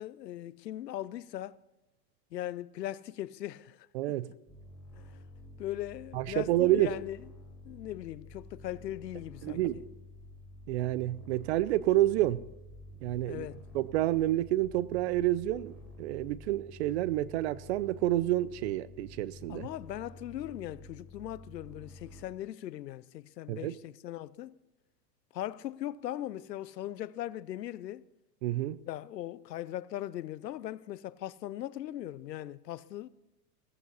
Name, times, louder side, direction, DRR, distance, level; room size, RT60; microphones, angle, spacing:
voice 1, 0.0-1.6 2.3-4.2 4.9-5.2 5.6-7.2 7.6-9.8 13.3-13.6 19.5-24.6 25.3-28.1 28.9-33.1, left 13 dB, 90° left, 0.7 m, -39 dB
voice 2, 3.9-4.3 6.1-6.9 9.4-9.8 10.7-12.4 13.0-13.5 13.7-19.7 23.5-23.7 28.4-28.8, right 15 dB, 45° right, 0.6 m, -29 dB
sound 1, 4.5-22.2, left 1 dB, ahead, 5.0 m, -50 dB
16.0 x 14.5 x 4.1 m
hypercardioid pair, 140°, 48 cm